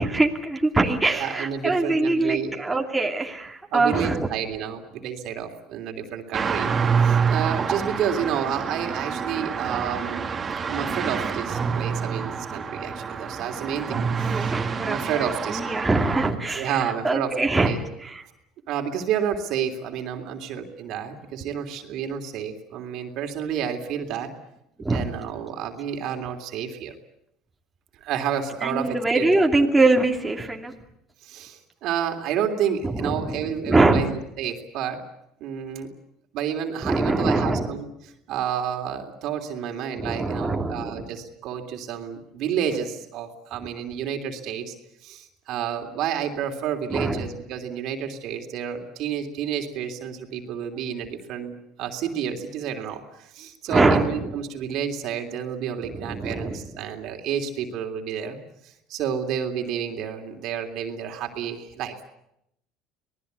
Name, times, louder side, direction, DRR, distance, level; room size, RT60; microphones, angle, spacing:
voice 1, 0.0-4.3 14.2-18.2 24.8-25.1 28.6-30.7 32.8-34.0 36.8-37.7 40.0-41.1 46.9-47.3 53.7-54.3 55.9-56.6, right 2 dB, 10° right, 1 dB, 2.6 m, -23 dB
voice 2, 1.1-2.5 3.7-6.7 7.0-10.2 10.7-14.5 14.8-15.6 16.5-17.4 17.6-17.8 18.7-24.3 24.9-26.9 28.0-29.3 31.2-35.0 35.4-35.9 36.3-37.8 38.3-44.7 45.0-58.4 58.9-61.9, right 8 dB, 60° right, 5 dB, 3.2 m, -30 dB
sound 1, 6.3-16.3, right 6 dB, 30° right, 2.4 m, -27 dB
26.0 x 19.0 x 8.3 m, 0.79 s
supercardioid pair, 110°, 0 cm